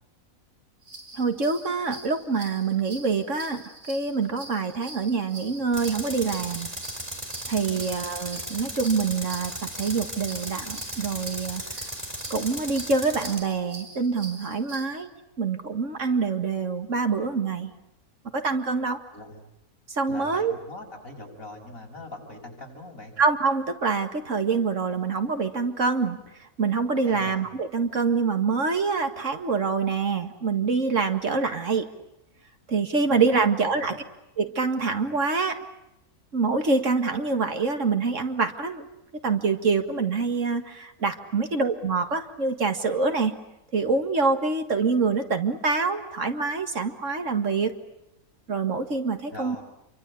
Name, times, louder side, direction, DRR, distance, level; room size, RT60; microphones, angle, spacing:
sound 1, 0.8-14.9, right 2 dB, 85° right, 7.5 m, -44 dB
voice 1, 1.1-6.7 7.5-11.8 12.3-15.1 15.4-17.7 18.3-19.0 19.9-20.5 23.2-26.2 26.6-31.9 32.7-34.0 34.4-35.6 36.3-38.8 39.2-43.3 43.7-47.7 48.5-49.6, right 4 dB, 60° right, 7 dB, 2.2 m, -25 dB
Tools, 5.7-13.4, right 1 dB, 20° right, 4.5 m, -36 dB
voice 2, 19.1-19.5 20.1-23.1 27.0-27.4 33.1-33.9 49.3-49.6, left 2 dB, 70° left, 1 dB, 6.5 m, -42 dB
28.5 x 24.0 x 8.4 m, 0.86 s
omnidirectional pair, 1.5 m